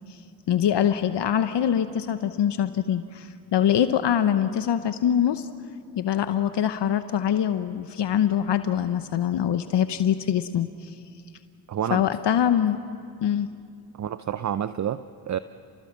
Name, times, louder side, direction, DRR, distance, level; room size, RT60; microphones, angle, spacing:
voice 1, 0.5-5.5 5.9-10.9 11.9-12.8 13.2-13.5, left 9 dB, 60° left, 10 dB, 1.0 m, -24 dB
voice 2, 11.7-12.0 13.9-15.4, right 9 dB, 40° right, 13 dB, 0.6 m, -29 dB
29.5 x 20.5 x 7.3 m, 2.4 s
cardioid pair, 65°, 46 cm